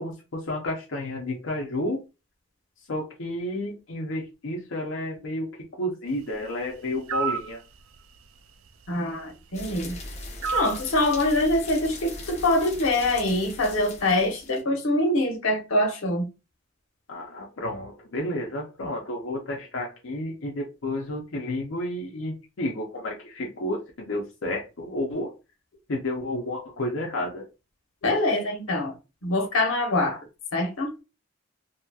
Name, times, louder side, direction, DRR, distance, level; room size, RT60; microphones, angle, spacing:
voice 1, 0.0-2.0 2.9-7.6 17.1-25.3 25.9-27.5, left 1 dB, 70° left, 0.6 m, -31 dB
sound 1, 7.1-7.5 10.4-10.8, right 6 dB, 85° right, 0.4 m, -28 dB
voice 2, 8.9-9.9 10.5-16.3 28.0-28.9 29.2-30.2 30.5-31.0, left 1 dB, 90° left, 0.9 m, -24 dB
sound 2, 9.5-14.6, left 2 dB, 35° left, 0.7 m, -40 dB
2.7 x 2.7 x 2.3 m
head